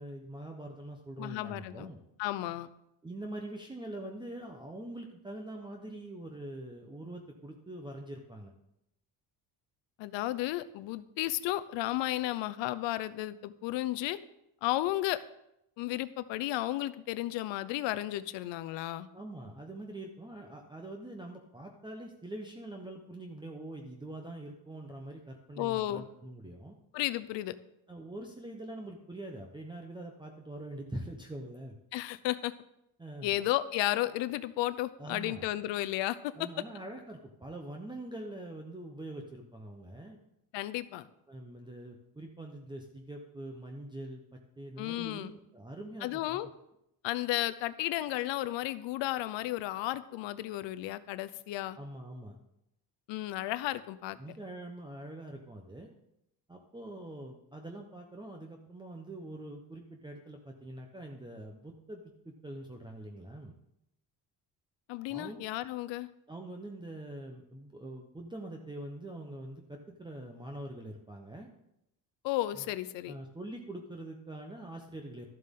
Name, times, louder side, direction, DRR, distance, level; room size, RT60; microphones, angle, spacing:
voice 1, 0.0-2.0 3.0-8.5 19.1-26.7 27.9-31.8 33.0-33.5 35.0-35.5 36.4-40.2 41.3-46.4 51.7-52.4 54.2-55.9 56.5-63.5 65.1-65.5 66.3-71.5 72.5-72.7 73.1-75.3, right 1 dB, 10° right, 2 dB, 0.8 m, -44 dB
voice 2, 1.2-1.9 2.2-2.7 10.0-14.2 14.6-15.2 15.8-19.1 25.6-26.0 26.9-27.6 31.9-32.5 33.2-36.3 40.5-41.1 44.8-45.3 46.0-46.5 47.0-51.8 53.1-54.2 64.9-66.1 72.2-73.1, left 15 dB, 90° left, 14 dB, 0.7 m, -33 dB
12.5 x 7.6 x 3.7 m, 0.83 s
cardioid pair, 115°, 43 cm